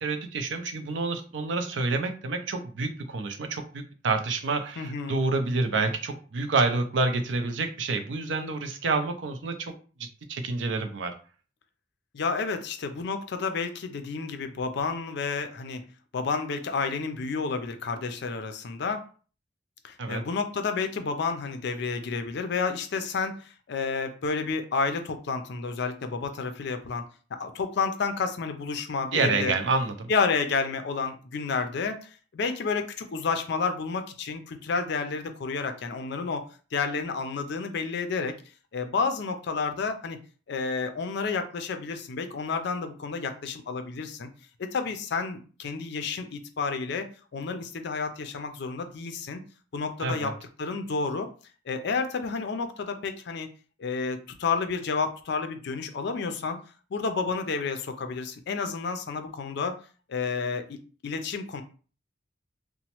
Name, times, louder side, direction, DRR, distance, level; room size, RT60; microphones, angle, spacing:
voice 1, 0.0-9.7 10.0-11.1 20.0-20.2 29.1-30.1 50.0-50.3, right 3 dB, 65° right, 6 dB, 0.5 m, -28 dB
voice 2, 4.8-5.2 12.1-19.0 19.8-27.0 27.3-29.5 30.1-36.5 36.7-38.3 38.7-40.2 40.5-44.3 44.6-47.1 47.3-49.4 49.7-50.3 50.6-51.3 51.7-53.5 53.8-56.6 56.9-59.7 60.1-60.8 61.0-61.6, left 4 dB, 60° left, 7 dB, 0.4 m, -30 dB
3.0 x 2.1 x 2.9 m, 0.38 s
head